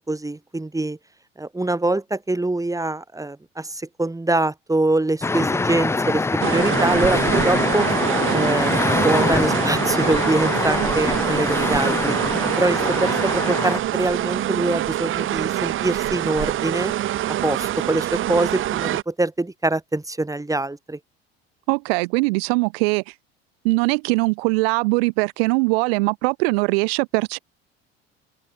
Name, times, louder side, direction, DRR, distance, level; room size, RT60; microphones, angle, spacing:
voice 1, 0.1-1.0 1.4-7.9 8.3-12.1 12.6-16.9 17.4-21.0, right 2 dB, 10° right, 2.6 m, -24 dB
sound 1, 5.2-13.8, left 3 dB, 10° left, 0.5 m, -23 dB
sound 2, 6.4-19.0, right 13 dB, 40° right, 0.7 m, -25 dB
voice 2, 21.7-23.1 23.6-27.4, right 28 dB, 70° right, 1.7 m, -21 dB
open air
hypercardioid pair, 70°, 31 cm